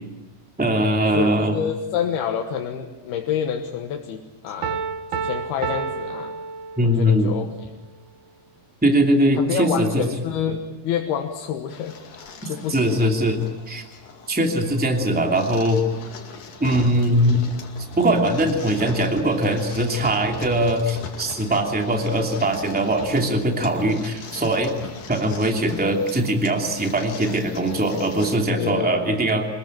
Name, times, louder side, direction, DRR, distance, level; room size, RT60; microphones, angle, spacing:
voice 1, 0.6-1.6 6.8-7.3 8.8-10.0 12.7-13.4 13.7-13.8 14.3-15.8 16.6-17.4 18.0-24.7 25.1-29.4, right 1 dB, 5° right, 2 dB, 1.7 m, -21 dB
voice 2, 1.1-4.8 5.1-6.4 6.8-7.7 9.4-12.0 12.5-13.1 28.5-29.1, left 8 dB, 75° left, 3 dB, 3.2 m, -28 dB
Piano, 4.6-7.2, right 5 dB, 75° right, 3.3 m, -30 dB
sound 1, 11.7-28.4, left 5 dB, 55° left, 3.7 m, -40 dB
26.0 x 21.0 x 8.9 m, 1.1 s
omnidirectional pair, 4.7 m